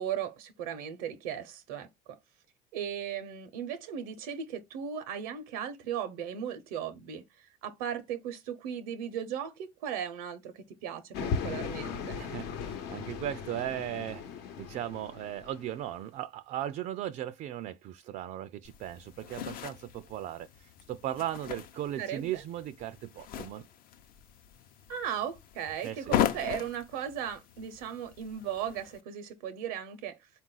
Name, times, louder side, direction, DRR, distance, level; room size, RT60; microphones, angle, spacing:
voice 1, 0.0-2.2 2.7-12.2 22.0-22.4 24.9-30.3, right 9 dB, 90° right, 0.7 m, -37 dB
sound 1, 11.1-15.8, left 6 dB, 75° left, 1.0 m, -37 dB
voice 2, 12.2-14.2 14.6-23.7 25.8-26.1, right 12 dB, 50° right, 0.4 m, -37 dB
sound 2, 18.6-29.0, left 11 dB, 55° left, 0.7 m, -38 dB
4.1 x 2.4 x 3.8 m
supercardioid pair, 100°, 17 cm